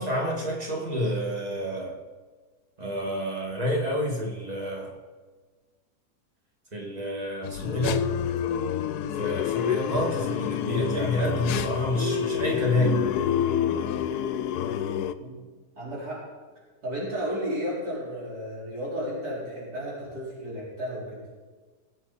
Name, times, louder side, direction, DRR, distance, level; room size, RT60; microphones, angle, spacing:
voice 1, 0.0-2.0 2.8-4.9 6.7-8.1 9.1-13.0, equal, 25° right, -1 dB, 2.3 m, -28 dB
sound 1, 7.4-15.1, left 9 dB, 80° left, 1.2 m, -28 dB
voice 2, 15.8-16.2 16.8-21.2, equal, 75° right, -8 dB, 5.3 m, -33 dB
20.5 x 8.2 x 4.2 m, 1.4 s
omnidirectional pair, 1.7 m